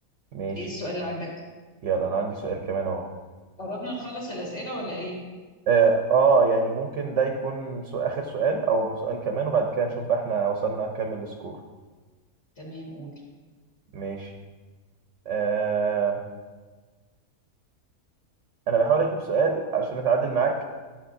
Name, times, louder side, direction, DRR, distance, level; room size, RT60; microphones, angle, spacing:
voice 1, 0.6-1.3 3.6-5.2 12.6-13.1, equal, 50° left, -4 dB, 2.0 m, -34 dB
voice 2, 1.8-3.1 5.7-11.6 13.9-14.3 15.3-16.2 18.7-20.6, right 5 dB, 60° right, 3 dB, 1.0 m, -24 dB
11.5 x 7.4 x 2.6 m, 1.3 s
omnidirectional pair, 1.5 m